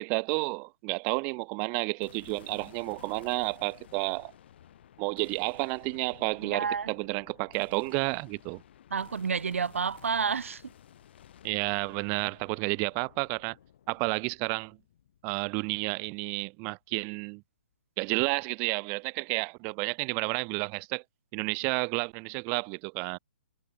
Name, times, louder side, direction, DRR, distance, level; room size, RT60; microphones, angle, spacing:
voice 1, 0.0-4.3 5.0-8.6 11.4-13.6 13.9-14.8 15.2-17.4 18.0-21.0 21.3-23.2, right 36 dB, 25° right, 0.4 m, -31 dB
sound 1, 2.0-16.3, left 10 dB, 55° left, 4.7 m, -55 dB
voice 2, 6.4-6.9 8.9-10.7, right 6 dB, 80° right, 1.0 m, -30 dB
hypercardioid pair, 140°, 7 cm